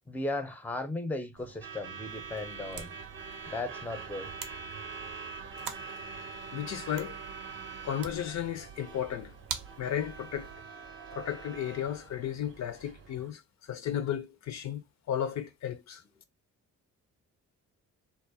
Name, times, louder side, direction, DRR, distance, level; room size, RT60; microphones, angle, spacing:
voice 1, 0.1-3.0 3.5-4.3, left 2 dB, 5° left, 0.5 m, -36 dB
Truck / Alarm, 1.4-13.3, right 5 dB, 40° right, 0.6 m, -44 dB
sound 1, 2.1-10.5, right 7 dB, 85° right, 0.5 m, -46 dB
voice 2, 6.5-7.2 7.8-9.3 9.8-10.5 11.1-16.0, left 10 dB, 60° left, 0.5 m, -34 dB
2.3 x 2.0 x 2.6 m
cardioid pair, 65°, 32 cm